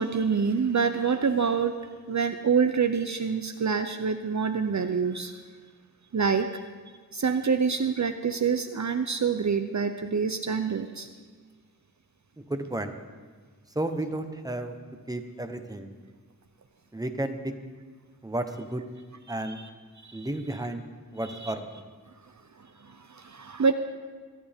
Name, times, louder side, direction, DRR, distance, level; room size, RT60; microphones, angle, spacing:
voice 1, 0.0-1.8 2.1-5.3 6.1-6.5 7.1-11.1 19.5-19.7 20.0-20.3 21.2-21.5 22.8-23.7, right 6 dB, 55° right, 8 dB, 0.6 m, -26 dB
voice 2, 12.5-13.0 13.7-14.7 15.1-15.9 16.9-17.5 18.2-18.8 19.3-19.6 20.1-20.8 21.1-21.8, right 1 dB, 10° right, 6 dB, 1.0 m, -32 dB
23.5 x 9.5 x 3.6 m, 1.5 s
wide cardioid pair, 75°, 35 cm